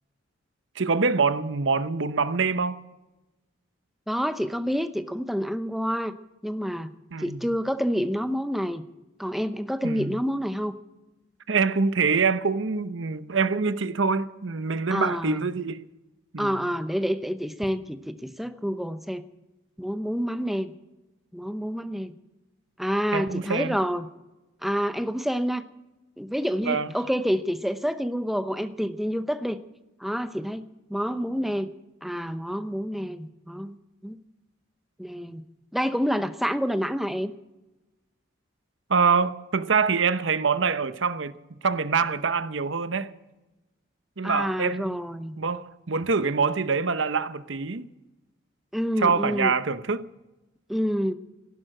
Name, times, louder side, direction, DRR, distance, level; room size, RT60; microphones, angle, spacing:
voice 1, 0.8-2.8 7.1-7.4 9.8-10.1 11.5-15.8 16.3-16.6 23.1-23.8 26.6-26.9 38.9-41.3 41.6-43.1 44.2-45.0 45.4-47.9 49.0-50.1, right 5 dB, 65° right, 0.9 m, -25 dB
voice 2, 4.1-6.1 6.4-6.9 7.2-8.8 9.2-10.7 14.9-15.5 16.4-19.2 19.8-20.7 21.3-22.1 22.8-24.1 24.6-25.6 26.2-29.6 30.0-30.6 30.9-31.7 32.0-33.8 34.0-34.2 35.0-35.4 35.7-37.3 44.2-45.4 48.7-49.5 50.7-51.1, equal, ahead, 0.8 m, -28 dB
16.0 x 11.5 x 7.7 m
head